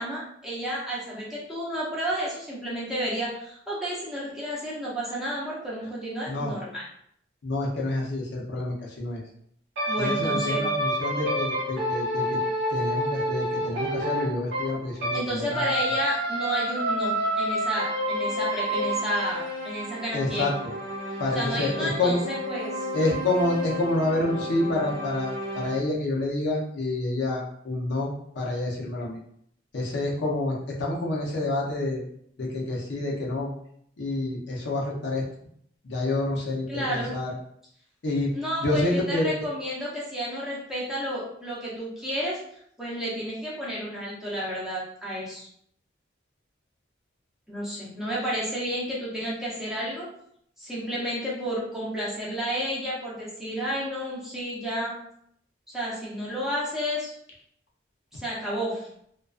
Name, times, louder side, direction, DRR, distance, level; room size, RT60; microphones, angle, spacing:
voice 1, 0.0-6.8 9.9-10.7 15.1-20.5 21.3-22.9 36.7-37.1 38.3-42.4 42.8-45.5 47.5-50.1 50.6-55.0 55.7-57.1 58.1-58.9, equal, ahead, -7 dB, 0.6 m, -31 dB
voice 2, 7.4-9.2 10.0-12.4 12.7-15.6 20.1-20.7 21.2-22.2 22.9-29.2 29.7-32.0 32.4-33.5 34.0-35.2 35.8-37.3 38.0-38.3 38.6-39.3, left 2 dB, 60° left, -3 dB, 0.5 m, -28 dB
sound 1, 9.8-15.2 15.5-25.8, equal, 55° right, 0.7 m, -29 dB
2.3 x 2.2 x 2.3 m, 0.69 s
head